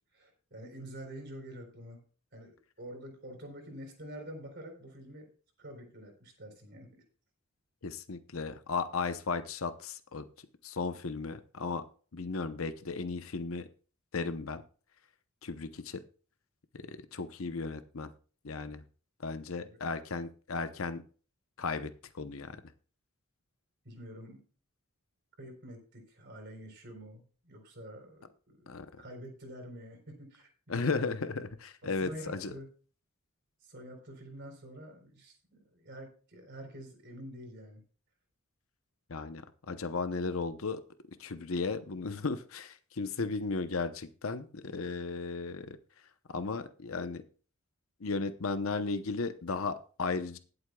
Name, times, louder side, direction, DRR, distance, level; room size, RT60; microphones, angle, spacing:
voice 1, 0.1-2.0 2.3-5.3 5.6-7.0 19.6-19.8 23.8-24.4 25.4-28.7 29.0-31.2 31.8-32.7 33.6-37.8, equal, 55° right, 3 dB, 3.9 m, -47 dB
voice 2, 7.8-10.3 10.6-11.9 12.1-13.7 14.1-14.6 15.4-16.0 16.7-18.1 18.4-18.8 19.2-21.0 21.6-22.6 28.7-28.9 30.7-32.5 39.1-40.8 41.2-45.8 46.3-47.2 48.0-50.4, left 4 dB, 75° left, 10 dB, 0.8 m, -35 dB
20.0 x 8.0 x 2.3 m, 0.39 s
head